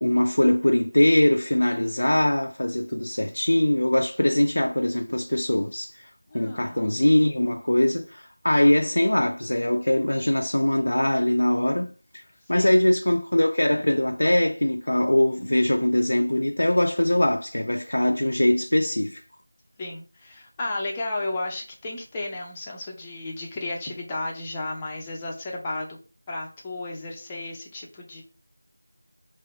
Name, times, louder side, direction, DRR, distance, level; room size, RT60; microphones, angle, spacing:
voice 1, 0.0-19.2, left 1 dB, 70° left, 0.3 m, -22 dB
voice 2, 6.3-6.8 12.5-12.7 19.8-25.9 26.3-28.2, left 2 dB, 10° left, 0.5 m, -33 dB
3.6 x 2.5 x 3.4 m
figure-of-eight pair, 175°, 0 cm